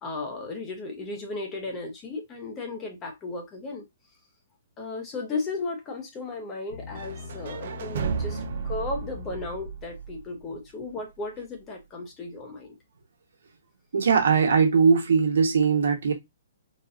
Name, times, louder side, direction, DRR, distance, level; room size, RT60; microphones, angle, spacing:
voice 1, 0.0-3.8 4.8-12.8, left 3 dB, 20° left, 0.8 m, -35 dB
sound 1, 6.7-10.1, left 5 dB, 80° left, 0.9 m, -41 dB
sound 2, 6.9-10.9, right 6 dB, 55° right, 0.6 m, -34 dB
voice 2, 13.9-16.1, right 5 dB, 75° right, 1.1 m, -20 dB
4.1 x 2.4 x 2.5 m
hypercardioid pair, 155°, 0 cm